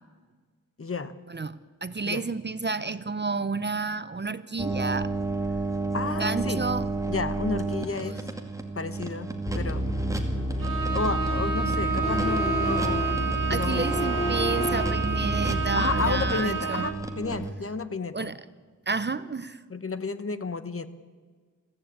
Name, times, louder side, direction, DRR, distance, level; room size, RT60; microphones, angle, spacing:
voice 1, 0.8-1.1 2.0-2.2 5.9-6.6 7.1-8.2 8.8-9.3 9.5-9.9 10.9-13.8 15.7-18.3 19.7-20.9, left 4 dB, 40° left, 13 dB, 1.1 m, -32 dB
voice 2, 1.3-5.1 6.1-6.9 8.1-8.2 13.5-16.9 18.1-18.4 18.9-19.6, right 4 dB, 30° right, 14 dB, 0.7 m, -30 dB
sound 1, 4.6-17.5, right 3 dB, 10° right, 2.2 m, -33 dB
sound 2, 9.5-16.3, left 1 dB, 20° left, 3.3 m, -29 dB
Bowed string instrument, 10.6-17.1, right 6 dB, 70° right, 2.9 m, -30 dB
22.5 x 15.0 x 8.7 m, 1.5 s
wide cardioid pair, 120°, 34 cm